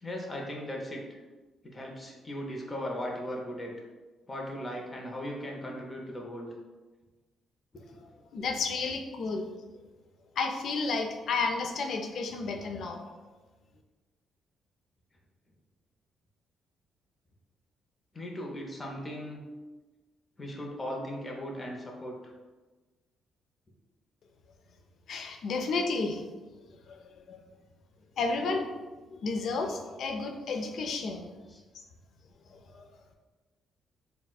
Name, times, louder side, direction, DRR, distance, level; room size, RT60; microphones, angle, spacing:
voice 1, 0.0-1.2 1.6-3.7 4.3-6.5 7.7-8.0 18.1-19.4 20.4-22.3 31.5-31.6, equal, 25° left, -1 dB, 0.6 m, -38 dB
voice 2, 8.3-9.5 10.4-13.0 25.1-26.2 26.9-27.4 28.2-28.8 29.1-31.3 32.5-32.9, left 4 dB, 65° left, 4 dB, 0.4 m, -32 dB
4.1 x 2.1 x 2.3 m, 1.3 s
cardioid pair, 90°, 0 cm